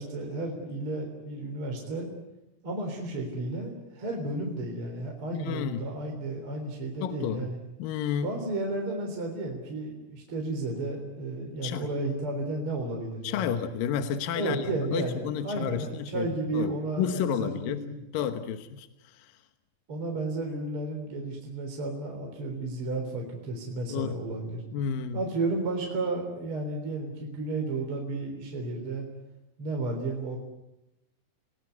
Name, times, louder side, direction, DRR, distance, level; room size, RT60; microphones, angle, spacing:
voice 1, 0.0-2.1 2.6-7.6 8.2-13.6 14.3-18.0 19.9-24.6 25.1-29.1 29.6-30.4, right 2 dB, 40° right, 1 dB, 4.4 m, -33 dB
voice 2, 5.3-5.9 7.0-7.5 7.8-8.3 11.6-11.9 13.2-16.3 16.5-17.9 18.1-19.3 23.9-24.2 24.7-25.2, left 8 dB, 75° left, 9 dB, 2.8 m, -31 dB
30.0 x 18.5 x 9.5 m, 0.94 s
omnidirectional pair, 4.1 m